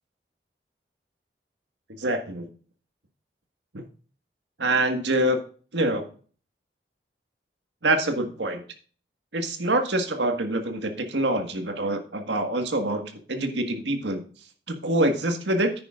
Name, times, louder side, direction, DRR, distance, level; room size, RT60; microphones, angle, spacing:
voice 1, 2.0-2.5 3.7-3.8 4.6-5.4 5.7-6.1 7.8-8.6 9.3-13.0 13.3-14.2 14.7-15.7, right 1 dB, 85° right, 6 dB, 1.7 m, -25 dB
9.9 x 9.7 x 2.5 m, 0.40 s
head